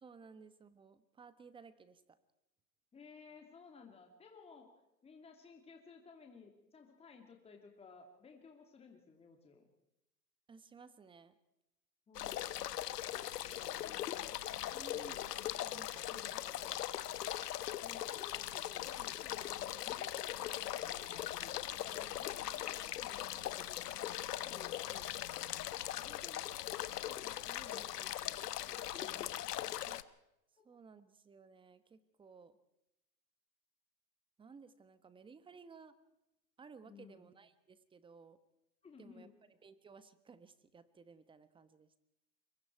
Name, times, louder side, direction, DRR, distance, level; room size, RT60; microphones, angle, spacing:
voice 1, 0.0-2.2 10.5-11.3 13.2-13.3 14.5-15.1 15.5-16.9 17.1-17.3 29.1-29.2 29.8-30.0 30.6-32.6 34.4-36.0 36.6-38.4 39.0-39.3 39.6-41.9, right 5 dB, 10° right, 14 dB, 1.1 m, -57 dB
voice 2, 2.9-4.7 5.0-9.7 12.1-12.5 12.8-13.3 14.7-15.2 17.6-23.8 24.4-25.1 25.4-26.5 26.8-29.3 30.6-30.7 36.8-37.3 38.8-39.3, left 5 dB, 10° left, 3 dB, 2.7 m, -58 dB
sound 1, 12.1-30.0, left 12 dB, 65° left, 1.2 m, -40 dB
25.0 x 23.5 x 4.6 m, 0.87 s
hypercardioid pair, 130°, 50 cm